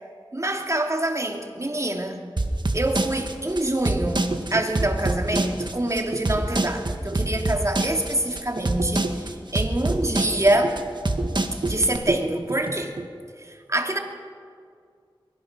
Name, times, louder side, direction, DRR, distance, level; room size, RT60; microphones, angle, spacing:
voice 1, 0.3-2.2 2.7-10.8 11.6-12.9 13.4-14.0, right 1 dB, 35° right, 3 dB, 2.8 m, -25 dB
sound 1, 2.4-12.0, right 2 dB, 60° right, 1.7 m, -26 dB
sound 2, 4.0-13.1, right 2 dB, 80° right, 1.3 m, -33 dB
24.0 x 23.5 x 6.0 m, 2.1 s
wide cardioid pair, 50°, 9 cm